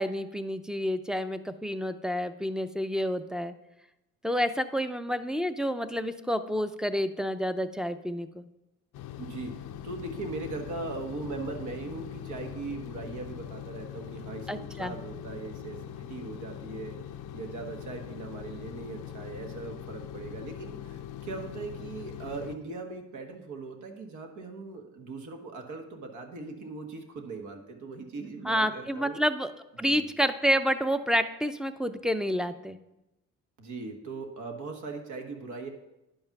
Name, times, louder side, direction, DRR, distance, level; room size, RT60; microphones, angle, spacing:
voice 1, 0.0-3.5 4.2-8.4 14.5-15.0 28.4-29.5 29.8-32.8, equal, ahead, 10 dB, 0.5 m, -29 dB
sound 1, 8.9-22.6, left 10 dB, 85° left, 0.6 m, -42 dB
voice 2, 9.2-17.0 17.3-29.2 29.8-30.1 33.6-35.7, right 3 dB, 75° right, 3 dB, 1.5 m, -39 dB
10.0 x 5.5 x 5.9 m, 0.94 s
cardioid pair, 90°, 30 cm